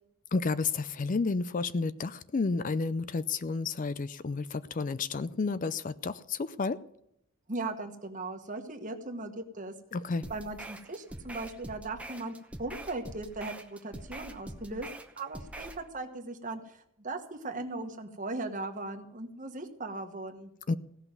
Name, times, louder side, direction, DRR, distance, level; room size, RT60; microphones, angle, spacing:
voice 1, 0.3-6.8 9.9-10.2 20.7-20.8, left 4 dB, 40° left, 0.4 m, -31 dB
voice 2, 7.5-9.7 10.3-14.9 15.2-20.5, right 2 dB, 40° right, 1.4 m, -38 dB
sound 1, 10.2-15.8, right 1 dB, 5° right, 0.9 m, -44 dB
16.5 x 6.0 x 9.0 m
head